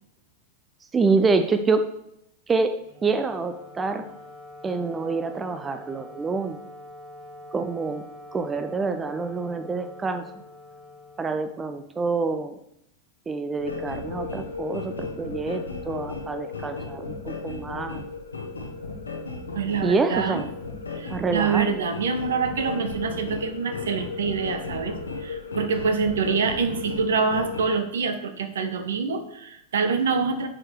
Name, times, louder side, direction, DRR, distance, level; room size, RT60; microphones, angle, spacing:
voice 1, 0.9-1.9 2.5-4.1 4.6-6.6 7.5-8.0 8.3-10.2 11.2-12.5 13.3-18.0 19.8-20.5 21.1-21.8, right 4 dB, 15° right, 9 dB, 0.5 m, -26 dB
Wind instrument woodwind instrument, 2.8-12.1, left 1 dB, 35° right, 1.7 m, -45 dB
sound 1, 13.6-27.7, left 4 dB, 75° left, 1.2 m, -35 dB
voice 2, 19.5-20.4 20.9-24.9 25.2-30.5, right 5 dB, 65° right, 9 dB, 0.9 m, -26 dB
9.6 x 4.6 x 4.7 m, 0.78 s
figure-of-eight pair, 90°, 0 cm